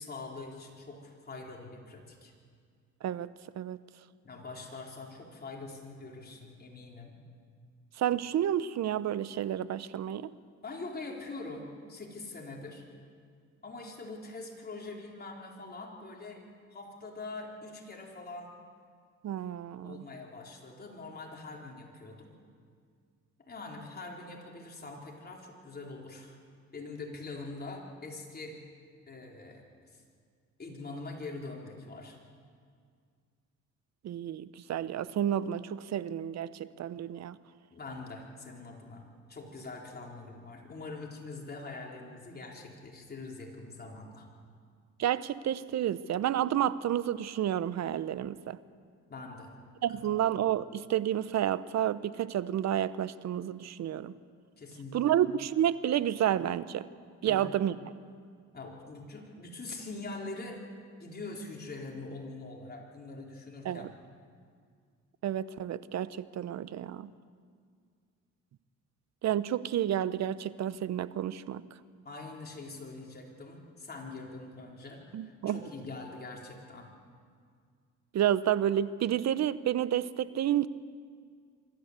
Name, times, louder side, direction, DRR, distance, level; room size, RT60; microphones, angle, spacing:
voice 1, 0.0-2.3 4.2-7.2 10.6-12.8 13.6-16.4 16.7-18.5 19.8-22.3 23.5-26.3 26.7-28.6 29.1-30.0 30.6-32.2 37.7-44.3 49.1-49.5 49.9-50.3 54.6-55.2 57.2-57.5 58.5-60.6 61.0-63.9 72.0-76.9, left 3 dB, 30° left, -1 dB, 4.3 m, -44 dB
voice 2, 8.0-10.3 19.2-20.0 34.0-37.4 45.0-48.6 49.8-54.1 54.9-56.9 57.2-57.8 63.6-63.9 65.2-67.1 69.2-71.6 75.1-75.6 78.1-80.7, right 11 dB, 60° right, 16 dB, 0.8 m, -30 dB
25.0 x 12.5 x 8.3 m, 2.1 s
cardioid pair, 90°, 30 cm